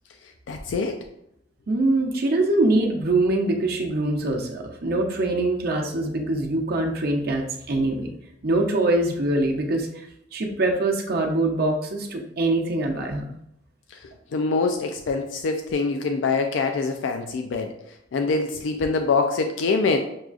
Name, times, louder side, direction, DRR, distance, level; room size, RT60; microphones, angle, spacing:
voice 1, 0.5-1.0 13.9-14.0 14.3-17.7 18.1-20.0, left 4 dB, 85° left, 5 dB, 0.4 m, -24 dB
voice 2, 1.7-8.1 8.4-10.1 10.3-13.4, right 2 dB, 55° right, 2 dB, 0.6 m, -23 dB
6.2 x 2.3 x 2.4 m, 0.77 s
head